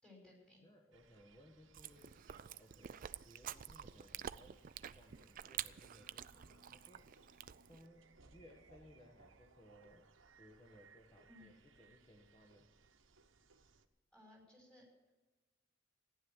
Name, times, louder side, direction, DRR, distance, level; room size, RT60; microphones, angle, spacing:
voice 1, 0.0-0.6 11.3-11.5 14.1-14.9, left 2 dB, 5° left, -1 dB, 5.3 m, -61 dB
voice 2, 0.6-2.3 2.6-4.6 4.9-7.1 7.6-10.1 10.4-12.7, equal, 20° left, 2 dB, 1.4 m, -63 dB
sound 1, 0.9-13.9, right 4 dB, 70° right, 1.0 m, -66 dB
Chewing mastication, 1.7-7.9, right 10 dB, 45° right, 0.4 m, -49 dB
15.0 x 11.0 x 8.0 m, 1.2 s
head